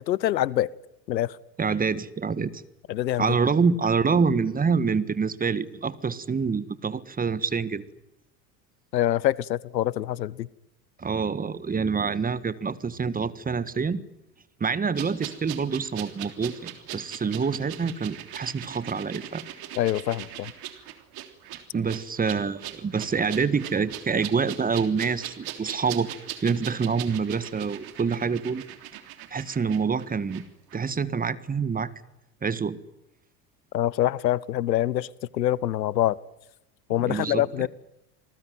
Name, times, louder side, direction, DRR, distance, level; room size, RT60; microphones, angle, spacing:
voice 1, 0.1-0.7 1.1-1.4 2.9-3.3 8.9-10.5 19.8-20.5 33.7-35.1 35.3-36.2 36.9-37.7, left 13 dB, 80° left, 0.9 m, -25 dB
voice 2, 1.6-2.6 3.2-7.8 11.0-14.0 14.6-19.4 21.7-26.1 26.4-28.6 29.3-30.4 30.7-31.9 32.4-32.8 37.0-37.5, right 5 dB, 15° right, 1.5 m, -26 dB
sound 1, 14.9-30.4 30.7-30.8, right 12 dB, 45° right, 3.4 m, -40 dB
27.5 x 20.0 x 9.3 m
hypercardioid pair, 80°, 50 cm